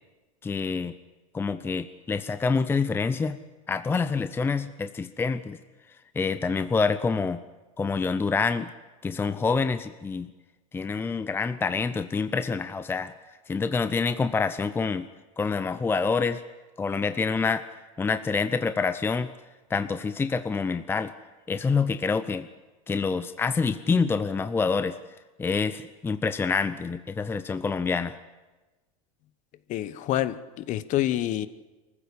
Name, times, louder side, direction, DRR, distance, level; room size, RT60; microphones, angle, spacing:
voice 1, 0.4-0.9 1.3-3.4 3.7-5.6 6.2-7.4 7.8-8.7 9.0-10.3 10.7-13.1 13.5-15.1 15.4-16.4 16.8-17.6 18.0-19.3 19.7-21.1 21.5-22.5 22.9-25.0 25.4-28.1, left 4 dB, 10° left, 11 dB, 0.6 m, -26 dB
voice 2, 29.7-31.5, left 13 dB, 40° left, 15 dB, 1.1 m, -27 dB
24.0 x 15.0 x 8.6 m, 1.2 s
supercardioid pair, 120°, 19 cm